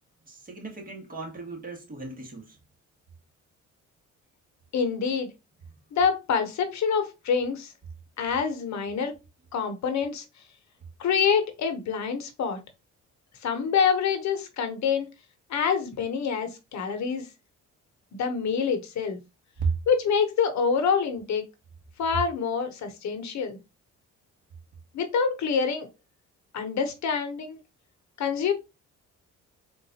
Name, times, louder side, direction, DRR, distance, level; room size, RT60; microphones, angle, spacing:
voice 1, 0.3-2.6 19.6-19.7, right 4 dB, 30° right, 1.5 m, -33 dB
voice 2, 4.7-5.3 5.9-7.7 8.2-9.1 9.5-10.2 11.0-12.6 13.4-15.1 15.5-17.3 18.1-19.2 19.9-21.4 22.0-23.6 24.9-25.9 26.5-27.6 28.2-28.5, left 6 dB, 65° left, 0.9 m, -26 dB
3.8 x 2.5 x 2.7 m
cardioid pair, 90°, 30 cm